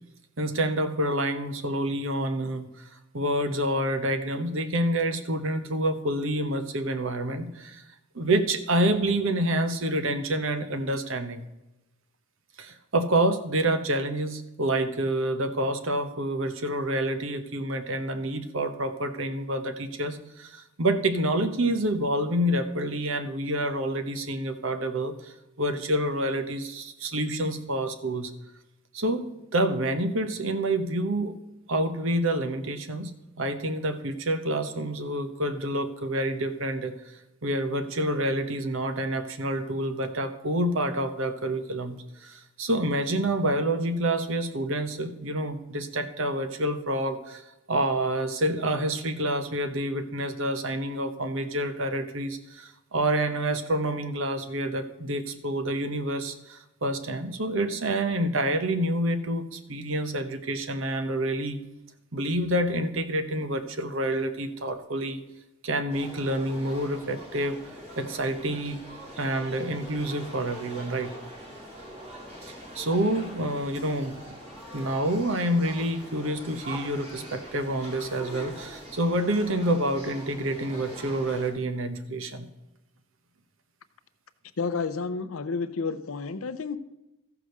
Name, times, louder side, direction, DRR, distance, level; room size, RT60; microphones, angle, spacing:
voice 1, 0.4-2.7 3.1-7.8 8.1-11.4 12.6-28.3 28.9-31.4 31.7-33.1 33.4-36.9 37.4-47.4 47.7-61.6 62.1-65.2 65.6-67.6 68.0-68.8 69.2-71.1 72.7-74.2 74.7-82.5, right 1 dB, 60° right, 9 dB, 1.0 m, -28 dB
sound 1, 65.9-81.5, equal, 30° right, 3.1 m, -43 dB
voice 2, 84.6-86.8, left 4 dB, 70° left, 11 dB, 0.6 m, -30 dB
14.0 x 4.9 x 6.5 m, 0.96 s
head